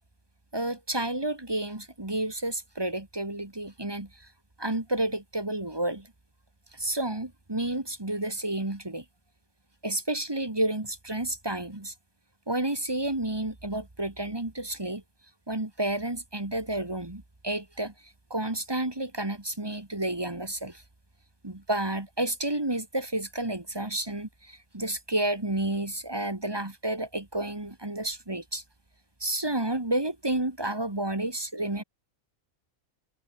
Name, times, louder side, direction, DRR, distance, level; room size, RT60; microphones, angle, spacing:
voice 1, 0.5-4.3 4.6-6.1 6.7-9.0 9.8-11.9 12.5-15.0 15.5-17.9 18.3-20.8 21.4-28.6 29.2-31.8, right 1 dB, 15° right, 1.8 m, -31 dB
omnidirectional pair, 1.5 m